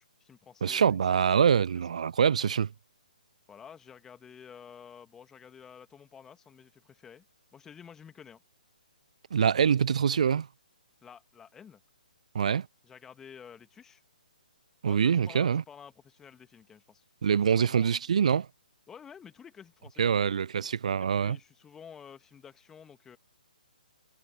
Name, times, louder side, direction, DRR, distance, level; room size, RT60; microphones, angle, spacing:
voice 1, 0.0-1.2 1.8-1.9 3.5-7.2 7.5-8.4 11.0-11.8 12.8-14.0 14.9-17.0 17.3-18.0 18.9-20.2 21.0-23.2, left 7 dB, 10° left, 2.3 m, -51 dB
voice 2, 0.6-2.7 9.3-10.5 12.3-12.7 14.8-15.6 17.2-18.5 20.0-21.4, right 7 dB, 50° right, 0.6 m, -25 dB
figure-of-eight pair, 130°, 5 cm